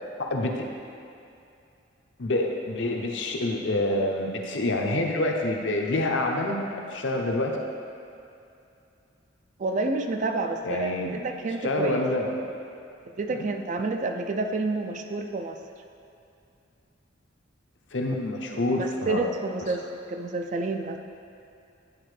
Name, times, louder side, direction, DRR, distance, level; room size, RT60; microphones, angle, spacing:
voice 1, 0.3-0.6 2.2-7.6 10.6-11.3 11.6-12.4 13.3-13.5 17.9-19.2, left 1 dB, 70° left, 1 dB, 0.7 m, -27 dB
voice 2, 9.6-10.9 11.2-12.0 13.1-15.6 18.6-21.0, right 3 dB, 40° right, 5 dB, 0.3 m, -29 dB
9.8 x 4.2 x 3.3 m, 2.6 s
head